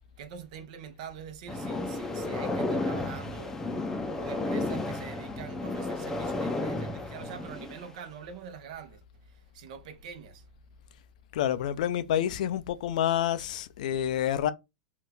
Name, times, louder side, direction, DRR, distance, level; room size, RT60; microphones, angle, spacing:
voice 1, 0.2-3.6 4.2-10.4, right 7 dB, 65° right, 0.8 m, -44 dB
sound 1, 1.5-7.9, left 2 dB, 10° left, 0.5 m, -32 dB
voice 2, 11.3-14.5, left 10 dB, 70° left, 0.4 m, -28 dB
2.7 x 2.4 x 3.3 m
hypercardioid pair, 120°, 4 cm